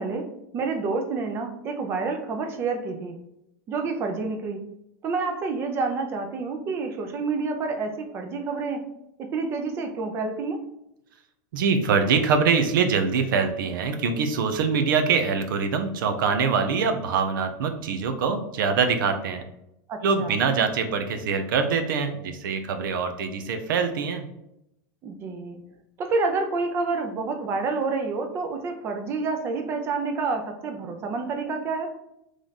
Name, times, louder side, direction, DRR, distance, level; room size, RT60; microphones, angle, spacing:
voice 1, 0.0-3.2 3.7-4.7 5.0-8.9 9.2-10.6 19.9-20.4 25.0-25.6 26.0-31.9, right 4 dB, 20° right, 5 dB, 0.6 m, -28 dB
voice 2, 11.5-19.4 20.0-24.3, right 5 dB, 80° right, 7 dB, 0.7 m, -24 dB
3.7 x 3.2 x 4.1 m, 0.83 s
supercardioid pair, 170°, 11 cm